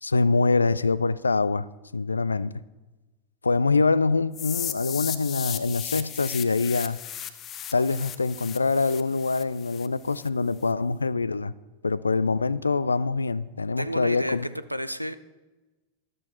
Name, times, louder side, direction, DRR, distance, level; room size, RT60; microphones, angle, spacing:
voice 1, 0.0-1.7 1.9-2.5 3.4-7.0 7.7-11.5 11.8-14.5, left 3 dB, 80° left, 0.4 m, -24 dB
sound 1, 4.3-10.3, left 10 dB, 30° left, 0.8 m, -36 dB
voice 2, 13.8-15.1, equal, 90° right, 0.5 m, -31 dB
13.0 x 11.5 x 4.4 m
figure-of-eight pair, 90°, 0 cm